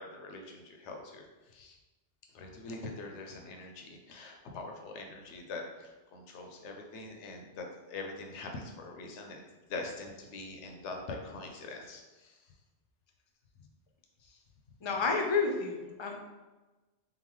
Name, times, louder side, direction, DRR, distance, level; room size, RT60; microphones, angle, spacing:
voice 1, 0.0-1.8 2.3-9.4 9.7-12.4, left 3 dB, 85° left, 3 dB, 0.9 m, -43 dB
voice 2, 14.8-16.3, left 4 dB, 35° left, 2 dB, 0.4 m, -30 dB
3.9 x 3.9 x 3.0 m, 1.1 s
omnidirectional pair, 1.2 m